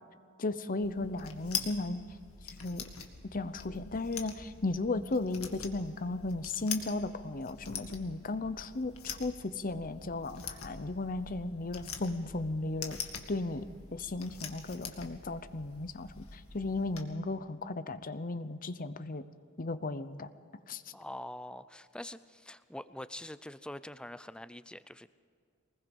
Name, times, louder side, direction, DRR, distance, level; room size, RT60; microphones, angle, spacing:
voice 1, 0.4-2.0 2.6-2.8 3.3-13.0 13.3-13.7 13.9-19.2 19.6-20.3 20.7-20.8, left 2 dB, 40° left, 12 dB, 0.8 m, -35 dB
sound 1, 0.8-17.0, left 7 dB, 75° left, 2.0 m, -44 dB
voice 2, 20.9-25.1, left 1 dB, 5° left, 14 dB, 0.5 m, -44 dB
23.5 x 20.5 x 5.5 m, 2.3 s
head